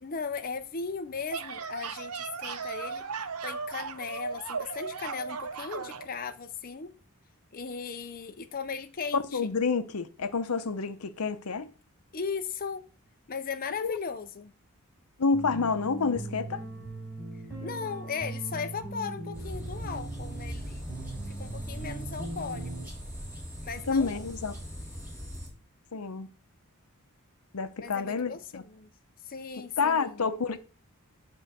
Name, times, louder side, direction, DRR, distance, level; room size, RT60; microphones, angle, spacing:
voice 1, 0.0-3.0 3.4-6.9 7.5-9.5 12.1-12.8 13.3-14.5 17.6-20.8 21.4-22.9 23.6-24.3 27.8-28.9 29.2-30.3, left 5 dB, 40° left, 0.6 m, -37 dB
sound 1, 1.1-6.1, right 5 dB, 80° right, 0.8 m, -36 dB
voice 2, 9.3-11.7 13.8-13.9 15.2-16.6 23.9-24.5 25.9-26.3 27.5-28.6 29.8-30.6, left 4 dB, 80° left, 0.7 m, -29 dB
sound 2, 15.3-22.9, right 2 dB, 10° left, 5.8 m, -40 dB
sound 3, 19.3-25.5, equal, 10° right, 3.5 m, -40 dB
9.9 x 3.8 x 6.7 m
head